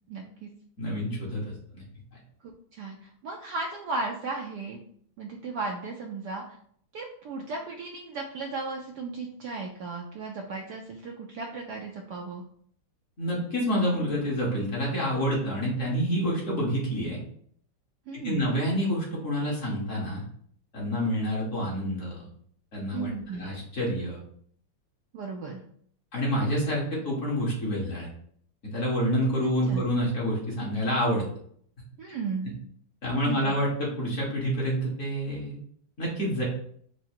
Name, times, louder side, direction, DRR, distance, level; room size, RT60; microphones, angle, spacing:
voice 1, 0.1-0.5 2.7-4.8 5.2-6.4 6.9-12.4 18.1-18.5 22.9-23.5 25.1-25.6 29.7-29.8 32.0-32.6 33.1-33.5, right 3 dB, 75° right, 1 dB, 1.0 m, -35 dB
voice 2, 0.8-1.4 1.7-1.8 13.2-17.2 18.1-20.2 20.7-22.3 22.7-23.1 23.4-24.2 26.1-28.1 28.6-31.3 33.0-35.6 36.0-36.4, equal, 45° left, -5 dB, 1.3 m, -28 dB
4.7 x 2.1 x 4.3 m, 0.63 s
omnidirectional pair, 2.2 m